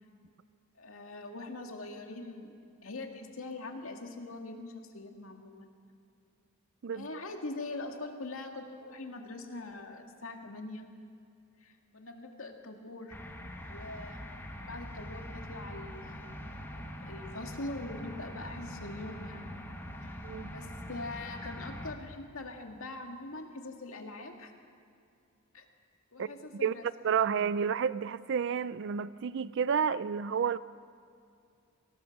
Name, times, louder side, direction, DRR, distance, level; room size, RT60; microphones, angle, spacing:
voice 1, 0.8-2.5 2.8-5.7 6.9-10.9 11.6-13.2 13.7-14.3 14.6-16.7 17.0-19.4 20.0-20.1 20.5-24.5 25.5-25.7 26.1-26.9, left 2 dB, 80° left, 3 dB, 2.2 m, -43 dB
sound 1, 13.1-21.9, equal, 10° left, 1.6 m, -43 dB
voice 2, 27.0-30.6, right 7 dB, 60° right, 16 dB, 0.4 m, -30 dB
24.0 x 18.5 x 6.1 m, 2.4 s
head